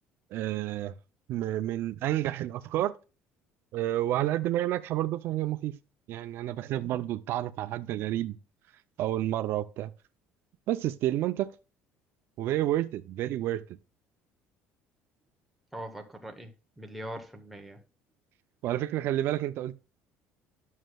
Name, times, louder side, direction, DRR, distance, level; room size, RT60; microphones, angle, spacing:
voice 1, 0.3-0.9 1.3-2.9 3.7-5.8 6.1-8.4 9.0-9.9 10.7-11.5 12.4-13.6 18.6-19.8, right 13 dB, 60° right, 0.4 m, -30 dB
voice 2, 15.7-17.8, right 1 dB, ahead, 1.0 m, -42 dB
11.0 x 6.4 x 2.3 m
cardioid pair, 140°, 5 cm